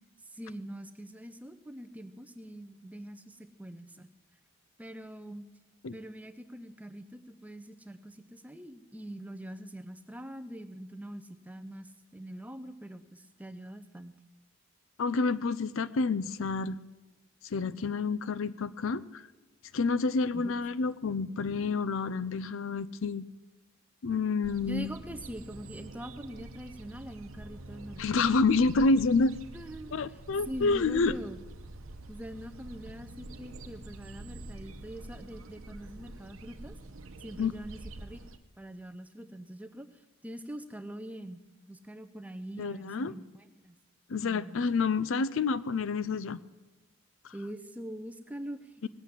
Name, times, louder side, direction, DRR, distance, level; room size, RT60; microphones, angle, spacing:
voice 1, 0.2-4.1 4.8-5.5 5.9-14.1 20.3-20.5 24.6-28.3 29.5-30.0 30.5-31.4 32.1-36.8 37.2-38.2 38.6-41.4 41.7-43.8 44.2-44.7 47.3-48.9, equal, 5° right, 10 dB, 0.6 m, -43 dB
voice 2, 15.0-16.8 17.4-19.2 19.7-23.2 24.0-24.9 28.0-29.4 29.9-31.1 37.4-37.5 42.6-43.1 44.1-46.4 47.2-47.3 48.8-48.9, left 4 dB, 65° left, 16 dB, 0.5 m, -28 dB
sound 1, 24.4-38.4, right 2 dB, 70° right, 0.9 m, -46 dB
18.5 x 8.2 x 7.4 m, 1.1 s
head